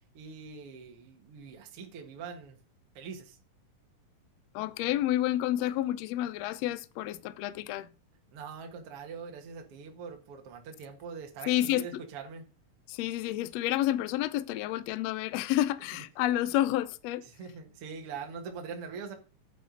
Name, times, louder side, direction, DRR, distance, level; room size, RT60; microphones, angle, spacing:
voice 1, 0.1-2.6 3.0-3.4 8.3-12.5 17.3-19.1, right 5 dB, 50° right, 2.2 m, -43 dB
voice 2, 4.5-7.9 11.5-12.0 12.9-17.3, left 13 dB, 85° left, 1.5 m, -30 dB
9.1 x 8.4 x 3.9 m
omnidirectional pair, 3.9 m